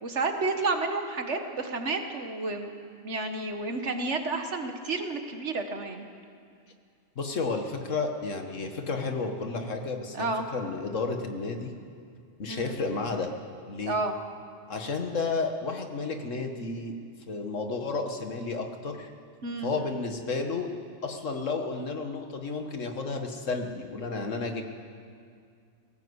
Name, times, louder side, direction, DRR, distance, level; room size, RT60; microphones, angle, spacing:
voice 1, 0.0-6.1 10.1-10.5 12.5-12.8 13.9-14.2 19.4-19.9, right 3 dB, 60° right, 6 dB, 1.8 m, -31 dB
voice 2, 7.2-11.7 12.4-13.3 13.7-14.0 14.7-16.9 17.3-19.1 19.6-20.7 21.0-24.6, left 4 dB, 70° left, 4 dB, 1.9 m, -32 dB
18.0 x 18.0 x 8.1 m, 2.2 s
omnidirectional pair, 1.4 m